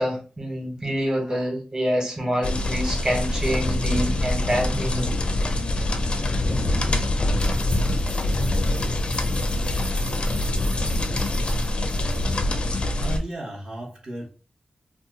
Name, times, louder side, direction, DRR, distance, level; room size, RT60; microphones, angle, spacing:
voice 1, 0.0-5.1 7.2-7.4, equal, 30° right, 0 dB, 1.1 m, -26 dB
sound 1, 2.4-13.2, left 1 dB, 45° left, 0.5 m, -24 dB
sound 2, 7.4-12.4, right 1 dB, 80° right, 1.2 m, -43 dB
voice 2, 13.0-14.3, right 1 dB, 50° right, -5 dB, 1.0 m, -34 dB
2.8 x 2.2 x 3.7 m, 0.37 s
wide cardioid pair, 125°, 2 cm